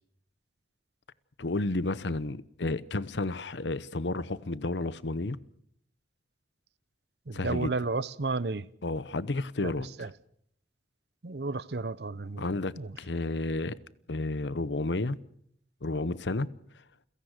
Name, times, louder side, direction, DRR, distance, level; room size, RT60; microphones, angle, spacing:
voice 1, 1.4-5.4 7.3-7.8 8.8-10.1 12.4-12.7 13.0-13.7 14.1-15.2 15.8-16.5, left 2 dB, 85° left, 0.9 m, -31 dB
voice 2, 7.3-8.7 9.6-9.7 10.0-10.1 11.2-12.4 12.8-12.9, right 3 dB, 70° right, 0.8 m, -32 dB
29.0 x 17.0 x 6.6 m
head